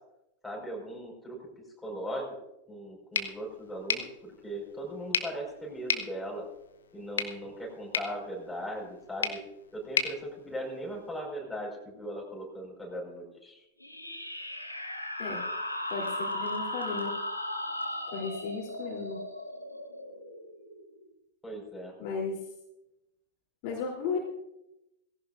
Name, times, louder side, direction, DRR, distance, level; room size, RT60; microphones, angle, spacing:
voice 1, 0.4-1.4 1.8-2.3 2.7-6.4 6.9-9.4 9.7-13.6 21.4-21.9, equal, 5° left, -2 dB, 5.1 m, -38 dB
sound 1, 3.1-11.2, left 7 dB, 65° left, 1.0 m, -36 dB
sound 2, 13.8-21.0, left 1 dB, 85° left, 1.7 m, -36 dB
voice 2, 15.9-17.1 18.1-19.2 22.0-22.4 23.6-24.2, left 4 dB, 45° left, -2 dB, 3.3 m, -34 dB
18.0 x 16.5 x 2.6 m, 0.89 s
figure-of-eight pair, 90°, 0 cm